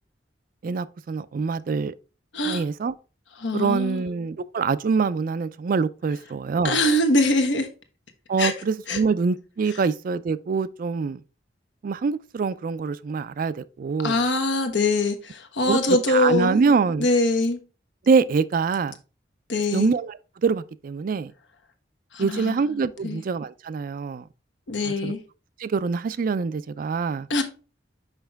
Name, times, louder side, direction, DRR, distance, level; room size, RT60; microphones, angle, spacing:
voice 1, 0.6-1.9 2.5-2.9 3.5-6.8 8.3-11.2 11.8-14.2 15.7-17.1 18.1-19.0 19.7-21.3 22.2-24.2 24.8-25.1 25.6-27.3, right 5 dB, 50° right, 0.3 m, -25 dB
voice 2, 3.4-4.0 6.6-7.7 8.4-8.5 8.9-9.0 14.0-16.6 17.0-17.6 19.5-19.9 22.1-22.6 23.0-23.2 24.7-25.2 27.3-27.4, left 2 dB, 90° left, 1.2 m, -23 dB
5.7 x 5.2 x 3.4 m
head